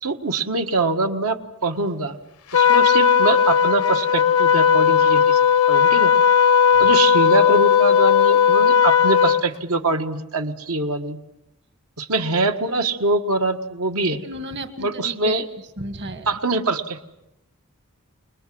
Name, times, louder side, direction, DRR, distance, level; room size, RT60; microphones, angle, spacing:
voice 1, 0.0-2.2 2.5-5.4 5.7-6.1 6.8-11.2 12.0-14.2 14.8-15.5 16.3-17.1, right 3 dB, 80° right, 5 dB, 1.7 m, -23 dB
Trumpet, 2.5-9.4, left 7 dB, 80° left, 0.9 m, -16 dB
voice 2, 14.1-15.4 15.8-16.4, right 1 dB, 50° right, 9 dB, 1.7 m, -34 dB
29.0 x 21.0 x 7.8 m, 0.86 s
head